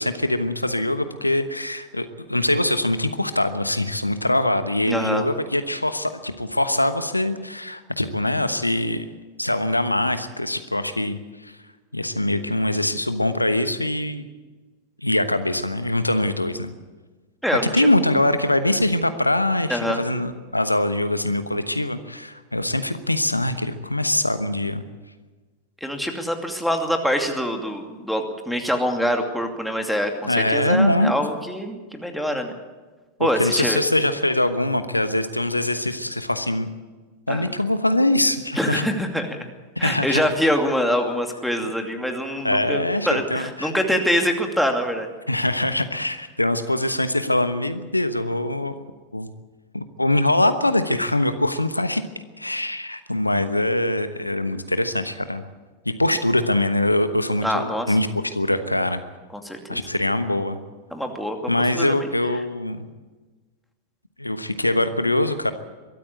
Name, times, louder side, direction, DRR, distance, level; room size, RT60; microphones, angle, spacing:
voice 1, 0.0-9.1 9.4-11.5 11.9-14.3 15.0-16.7 17.7-24.8 30.2-31.1 33.2-36.7 37.3-38.9 39.8-40.2 42.4-43.7 45.3-48.8 49.1-49.3 49.7-52.0 52.4-55.4 55.8-59.0 59.7-60.6 61.5-62.8 64.2-65.5, left 1 dB, 85° left, 11 dB, 1.1 m, -23 dB
voice 2, 4.9-5.3 17.4-17.9 19.7-20.0 25.8-32.5 33.2-33.8 37.3-37.5 38.5-39.5 39.8-45.1 57.4-57.9 59.3-59.8 60.9-61.4 61.7-62.0, equal, ahead, 3 dB, 2.5 m, -24 dB
22.5 x 13.5 x 8.5 m, 1.3 s
figure-of-eight pair, 90°, 0 cm